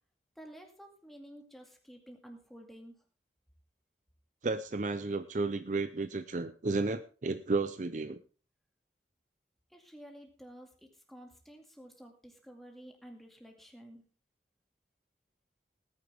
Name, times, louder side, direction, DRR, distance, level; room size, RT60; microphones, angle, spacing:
voice 1, 0.4-2.9 9.7-14.0, equal, ahead, 2 dB, 2.2 m, -52 dB
voice 2, 4.4-8.2, right 3 dB, 45° right, 11 dB, 0.5 m, -33 dB
18.5 x 9.6 x 3.5 m, 0.37 s
head